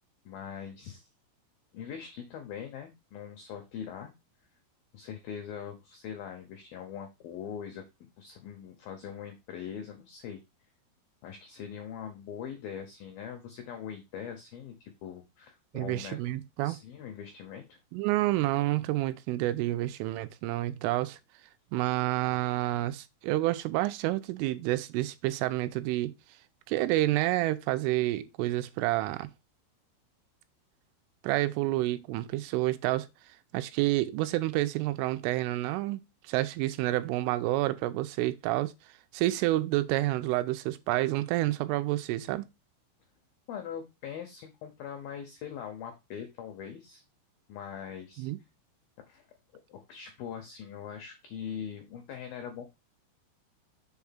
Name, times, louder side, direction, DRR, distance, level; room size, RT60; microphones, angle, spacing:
voice 1, 0.3-1.1 1.7-4.1 4.9-10.4 11.2-16.2 16.6-17.8 43.5-47.0 47.5-48.3 49.1-49.3 49.5-52.7, left 8 dB, 85° left, 2.0 m, -42 dB
voice 2, 15.7-16.8 17.9-21.2 21.7-26.1 26.7-29.3 31.2-33.1 33.5-38.7 39.1-42.5 48.2-48.4, right 16 dB, 85° right, 3.1 m, -29 dB
7.1 x 3.6 x 5.7 m
omnidirectional pair, 5.6 m